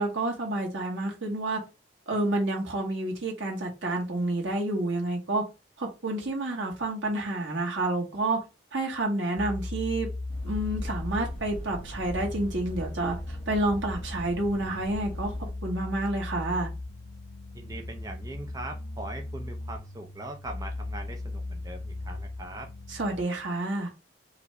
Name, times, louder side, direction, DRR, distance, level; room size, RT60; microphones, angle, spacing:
voice 1, 0.0-1.6 2.1-5.4 5.8-8.4 8.7-10.1 10.4-15.3 15.6-16.7 22.9-23.9, right 2 dB, 90° right, 1.7 m, -29 dB
sound 1, 9.4-23.2, left 2 dB, 65° left, 0.5 m, -38 dB
sound 2, 10.3-15.5, equal, 30° left, 1.6 m, -42 dB
voice 2, 17.5-22.7, right 2 dB, 20° right, 0.5 m, -41 dB
4.8 x 2.6 x 3.3 m
head